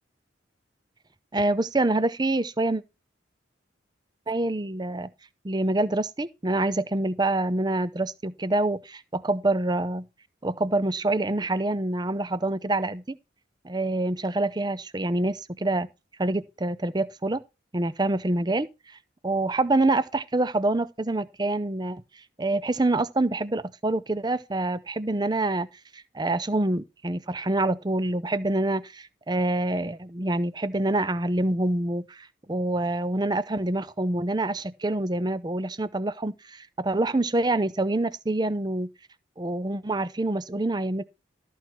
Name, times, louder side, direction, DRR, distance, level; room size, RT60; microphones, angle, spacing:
voice 1, 1.3-2.8 4.3-5.1 5.4-10.0 10.4-13.2 13.6-15.9 16.2-17.4 17.7-18.7 19.2-22.0 22.4-25.7 25.9-38.9 39.4-41.0, right 2 dB, 20° right, 0.6 m, -26 dB
13.5 x 4.6 x 5.7 m
head